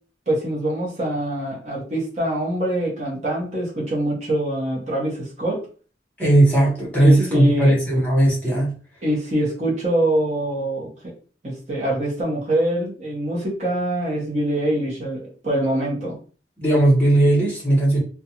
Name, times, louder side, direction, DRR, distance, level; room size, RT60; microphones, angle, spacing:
voice 1, 0.3-5.7 7.0-7.7 9.0-10.9 11.4-16.2, right 1 dB, 40° right, -5 dB, 0.9 m, -24 dB
voice 2, 6.2-8.7 16.6-18.0, right 1 dB, 10° left, -6 dB, 1.1 m, -17 dB
2.5 x 2.3 x 2.8 m, 0.40 s
head